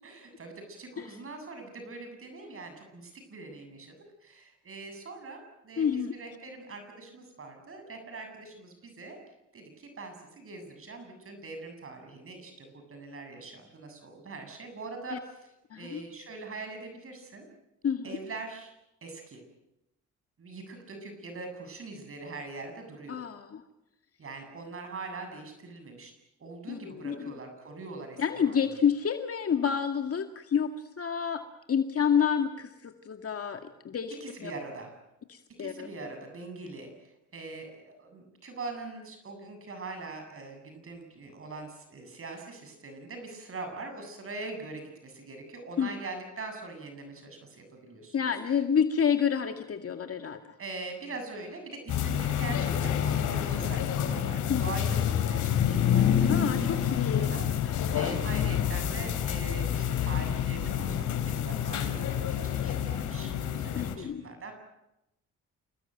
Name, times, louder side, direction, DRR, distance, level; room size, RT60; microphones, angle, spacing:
voice 1, 0.0-4.0 4.2-9.2 9.5-17.5 18.0-18.7 19.0-19.4 20.4-23.2 24.2-26.1 26.4-28.8 34.2-35.0 35.6-48.6 50.6-57.6 57.9-64.5, right 3 dB, 45° right, 6 dB, 7.9 m, -42 dB
voice 2, 5.8-6.1 15.1-15.2 15.7-16.0 17.8-18.1 23.1-23.6 26.7-27.3 28.2-30.7 31.0-31.4 31.7-34.5 35.3-35.9 45.8-45.9 48.1-50.4 54.5-54.7 56.3-57.3 57.6-58.0 63.8-64.2, left 7 dB, 50° left, 6 dB, 2.1 m, -29 dB
sound 1, 51.9-63.9, left 9 dB, 75° left, 4.1 m, -28 dB
28.5 x 19.5 x 9.2 m, 0.88 s
cardioid pair, 90°, 30 cm